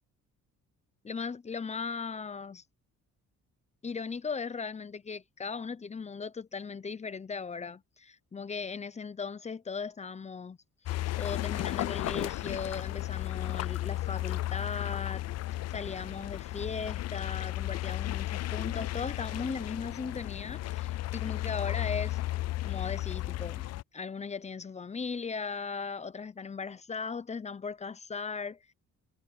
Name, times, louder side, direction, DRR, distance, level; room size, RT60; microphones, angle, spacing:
voice 1, 1.0-2.6 3.8-10.6 10.8-15.2 15.7-22.2 22.6-23.6 23.9-28.7, left 5 dB, 20° left, 0.8 m, -38 dB
sound 1, 10.9-23.8, left 16 dB, 55° left, 0.4 m, -34 dB
cardioid pair, 120°, 32 cm